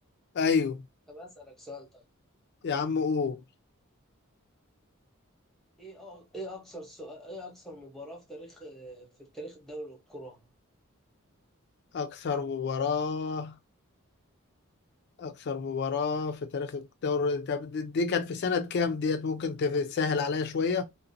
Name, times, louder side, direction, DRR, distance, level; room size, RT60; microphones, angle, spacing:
voice 1, 0.4-0.8 2.6-3.4 11.9-13.5 15.2-20.8, left 5 dB, 50° left, 0.4 m, -29 dB
voice 2, 1.1-2.0 5.8-10.5, equal, ahead, 0.8 m, -43 dB
2.4 x 2.1 x 2.5 m
head